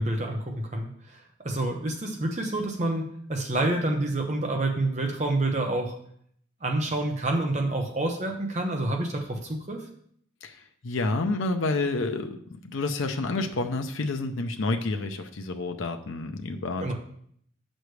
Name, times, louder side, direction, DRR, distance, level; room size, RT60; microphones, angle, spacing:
voice 1, 0.0-3.0 3.3-5.9 6.6-9.9 16.8-16.9, right 2 dB, 35° right, 2 dB, 0.9 m, -28 dB
voice 2, 10.4-16.9, left 2 dB, 90° left, 5 dB, 0.6 m, -29 dB
8.0 x 6.4 x 3.2 m, 0.65 s
head